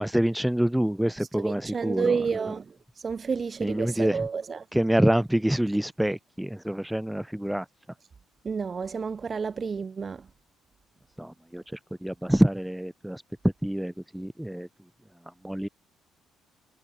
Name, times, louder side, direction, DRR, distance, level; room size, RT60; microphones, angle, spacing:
voice 1, 0.0-2.2 3.6-4.3 4.7-7.7 11.2-11.6 12.0-14.7 15.4-15.7, right 1 dB, 5° right, 4.1 m, -26 dB
voice 2, 1.2-4.7 8.4-10.3, right 5 dB, 35° right, 1.9 m, -30 dB
cardioid pair, 100°, 0 cm